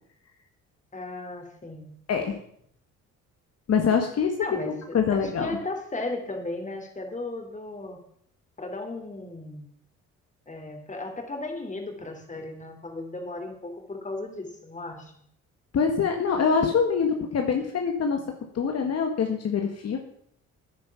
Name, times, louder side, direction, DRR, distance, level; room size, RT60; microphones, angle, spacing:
voice 1, 0.9-1.9 4.4-8.0 8.6-9.7 10.5-15.2, left 2 dB, 25° left, 4 dB, 3.0 m, -35 dB
voice 2, 3.7-4.3 4.6-5.5 15.7-18.2 18.5-20.0, left 6 dB, 55° left, 3 dB, 1.6 m, -24 dB
9.7 x 9.6 x 7.0 m, 0.68 s
cardioid pair, 90°, 30 cm